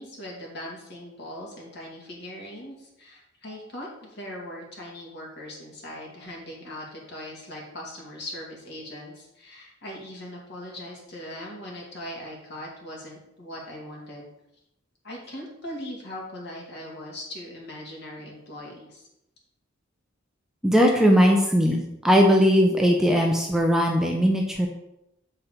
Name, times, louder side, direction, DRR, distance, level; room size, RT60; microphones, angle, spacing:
voice 1, 0.0-14.3 15.0-19.0, left 1 dB, 55° left, -2 dB, 2.3 m, -40 dB
voice 2, 20.6-24.7, equal, 5° right, 1 dB, 0.6 m, -19 dB
7.4 x 4.4 x 5.1 m, 0.86 s
head